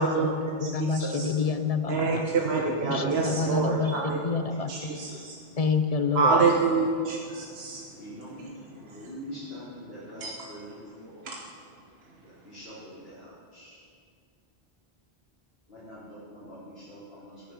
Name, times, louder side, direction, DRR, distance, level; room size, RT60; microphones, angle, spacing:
voice 1, 0.0-2.3 2.9-4.9 5.6-6.5, left 4 dB, 40° left, 9 dB, 0.7 m, -28 dB
voice 2, 0.6-1.3 1.9-4.2 4.7-5.4 6.1-7.8 10.2-10.3 11.2-11.4, right 4 dB, 80° right, -1 dB, 1.4 m, -26 dB
voice 3, 2.8-4.1 4.6-5.2 8.0-8.5 8.8-11.3 12.2-13.8 15.7-17.4, equal, 75° left, -12 dB, 4.2 m, -44 dB
16.0 x 9.9 x 5.5 m, 2.2 s
omnidirectional pair, 1.0 m